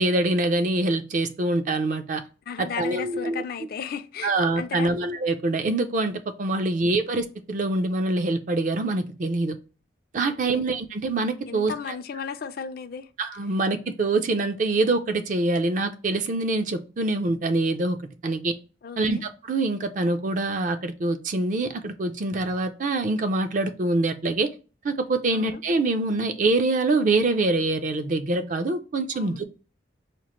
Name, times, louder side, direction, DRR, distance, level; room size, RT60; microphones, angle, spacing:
voice 1, 0.0-2.2 2.6-3.4 4.2-9.6 10.1-12.0 13.2-18.0 18.2-18.5 19.0-24.5 24.8-29.4, right 2 dB, 40° right, 0.4 m, -25 dB
voice 2, 2.5-4.9 10.2-10.6 11.5-13.1 18.8-19.2 25.3-25.6 29.1-29.4, left 6 dB, 50° left, 0.3 m, -35 dB
4.3 x 2.4 x 2.9 m
head